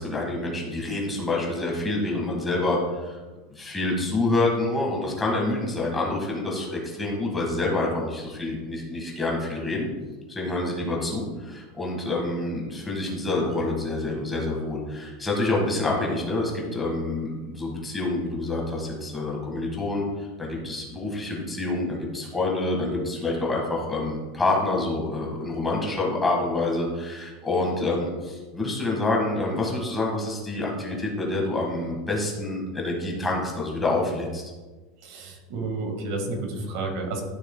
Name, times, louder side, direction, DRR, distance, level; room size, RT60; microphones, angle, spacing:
voice 1, 0.0-3.2 3.5-9.9 10.3-34.4, left 2 dB, 10° left, -2 dB, 1.6 m, -27 dB
voice 2, 35.0-37.2, right 3 dB, 50° right, 3 dB, 1.6 m, -31 dB
13.0 x 6.2 x 2.2 m, 1.3 s
supercardioid pair, 175°, 0 cm